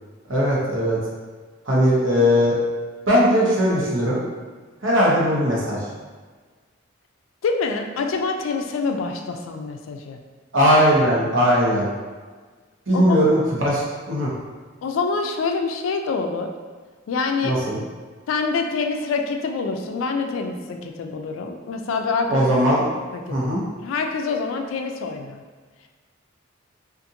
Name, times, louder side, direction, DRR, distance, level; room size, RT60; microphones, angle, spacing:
voice 1, 0.3-1.0 1.7-2.5 3.1-4.2 4.8-5.8 10.5-11.9 12.9-14.3 17.4-17.8 22.3-22.9 23.3-23.6, equal, 75° right, -6 dB, 0.9 m, -19 dB
voice 2, 7.4-10.2 12.9-13.3 14.8-16.5 17.1-17.6 18.3-22.5 23.3-23.4 23.8-25.4, left 4 dB, 85° left, 4 dB, 0.3 m, -26 dB
2.5 x 2.5 x 2.7 m, 1.4 s
head